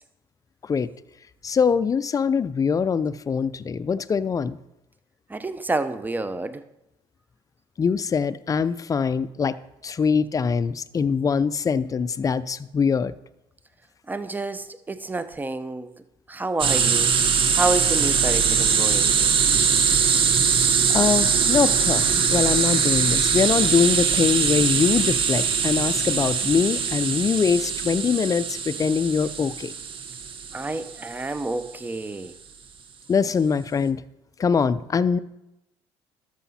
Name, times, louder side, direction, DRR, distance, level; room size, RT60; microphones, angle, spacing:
voice 1, 1.4-4.6 7.8-9.6 9.8-13.1 20.9-29.7 33.1-34.0 34.4-35.2, left 6 dB, 30° left, 16 dB, 0.5 m, -23 dB
voice 2, 5.3-6.6 14.1-15.9 16.3-17.1 17.5-19.1 30.5-32.3, right 2 dB, 15° right, 12 dB, 0.7 m, -29 dB
sound 1, 16.6-31.1, right 6 dB, 50° right, 1.1 m, -22 dB
12.5 x 6.5 x 4.2 m, 0.90 s
supercardioid pair, 75°, 12 cm